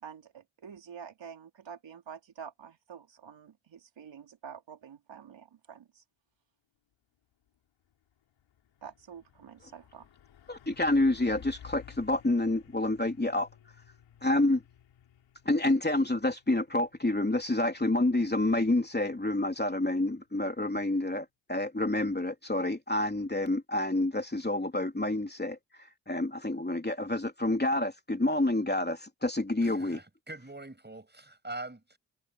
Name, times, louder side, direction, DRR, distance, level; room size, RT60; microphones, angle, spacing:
voice 1, 0.0-6.0 8.8-10.1, right 7 dB, 75° right, 4.1 m, -48 dB
Truck, 7.3-7.6 7.9-20.5, left 10 dB, 90° left, 4.5 m, -56 dB
voice 2, 10.5-13.5 14.2-14.6 15.4-30.0, left 2 dB, 20° left, 3.4 m, -28 dB
voice 3, 29.6-32.0, right 2 dB, 25° right, 6.6 m, -43 dB
supercardioid pair, 40°, 44 cm